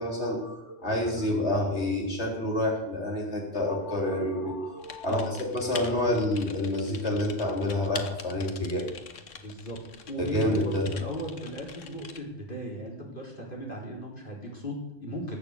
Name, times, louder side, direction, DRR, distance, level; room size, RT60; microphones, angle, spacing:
voice 1, 0.0-5.2 5.5-8.9 10.2-10.9, left 1 dB, 55° left, -1 dB, 4.2 m, -28 dB
Typing, 4.8-12.2, left 6 dB, 75° left, 1.6 m, -44 dB
voice 2, 5.1-5.4 9.4-9.8 10.1-15.4, equal, 40° left, -2 dB, 4.3 m, -37 dB
19.5 x 7.1 x 8.2 m, 0.91 s
omnidirectional pair, 1.3 m